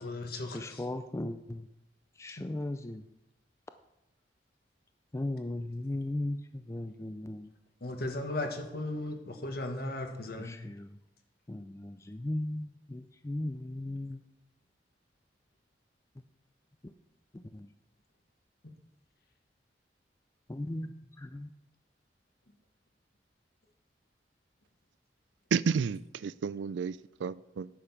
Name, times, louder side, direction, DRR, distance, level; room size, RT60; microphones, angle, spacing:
voice 1, 0.0-0.9 2.4-2.5 7.8-10.6, left 2 dB, 60° left, 1.6 m, -36 dB
voice 2, 0.5-1.7 2.2-3.0 5.1-7.5 10.4-10.9 11.5-14.2 17.5-17.7 20.5-20.9 21.2-21.5, left 1 dB, 15° left, 0.4 m, -37 dB
voice 3, 25.5-27.7, right 6 dB, 90° right, 0.4 m, -31 dB
10.0 x 7.0 x 5.8 m
head